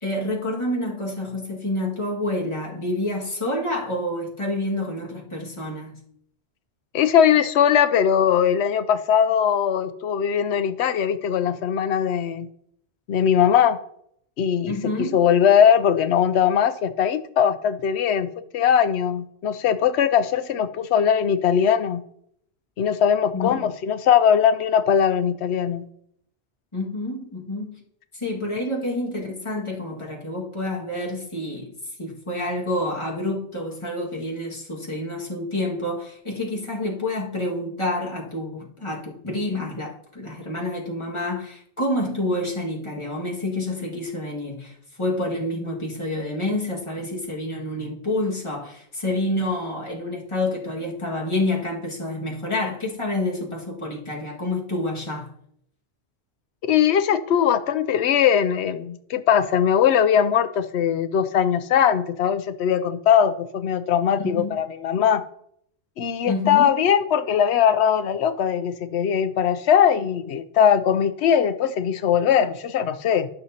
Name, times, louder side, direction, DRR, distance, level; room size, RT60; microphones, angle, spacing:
voice 1, 0.0-6.0 14.7-15.2 23.3-23.7 26.7-27.8 28.1-31.7 32.0-55.3 64.2-64.6 66.3-66.8, left 1 dB, 25° left, 1.9 m, -28 dB
voice 2, 6.9-12.5 13.1-13.8 14.4-22.0 22.8-25.8 56.6-65.2 66.0-73.3, left 8 dB, 85° left, 0.9 m, -20 dB
12.5 x 6.3 x 2.8 m
omnidirectional pair, 1.1 m